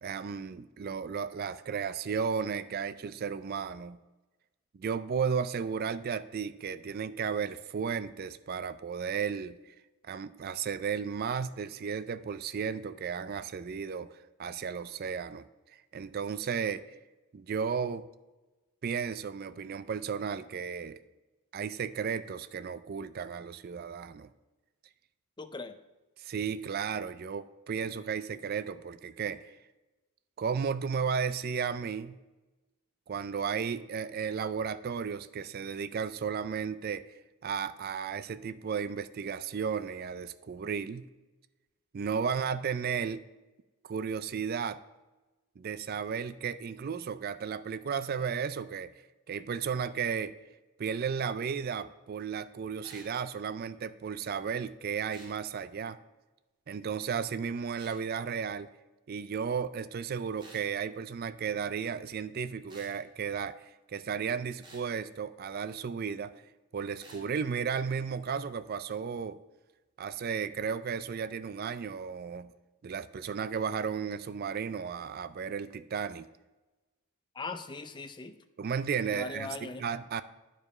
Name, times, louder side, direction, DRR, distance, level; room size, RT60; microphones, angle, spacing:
voice 1, 0.0-4.0 4.7-9.6 10.1-14.1 14.4-15.4 15.9-16.8 17.3-18.1 18.8-21.0 21.5-24.3 26.2-29.5 30.4-32.2 33.1-37.0 37.4-41.1 41.9-43.2 43.8-44.8 45.6-48.9 49.3-50.3 50.8-56.0 56.7-58.7 59.1-63.6 63.9-66.3 66.7-69.4 70.0-72.5 72.8-76.3 78.6-80.2, right 6 dB, 45° right, 13 dB, 0.3 m, -34 dB
voice 2, 25.4-25.8 77.3-78.4 79.0-79.9, left 3 dB, 20° left, 10 dB, 0.4 m, -40 dB
sound 1, 52.8-53.1 55.1-55.4 57.8-58.0 60.4-60.7 62.7-63.0 64.6-64.9 67.0-67.2, right 2 dB, 20° right, 2.0 m, -52 dB
9.4 x 5.0 x 5.4 m, 1.1 s
head